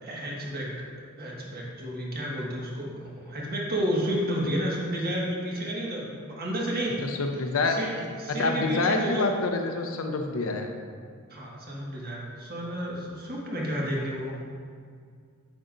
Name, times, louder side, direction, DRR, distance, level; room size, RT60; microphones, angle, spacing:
voice 1, 0.0-0.7 1.2-7.0 7.6-7.9 8.2-9.3 11.3-14.4, equal, 45° right, -4 dB, 1.6 m, -31 dB
voice 2, 7.0-7.8 8.4-10.7, left 3 dB, 70° left, 4 dB, 0.8 m, -27 dB
8.0 x 7.5 x 2.6 m, 2.1 s
head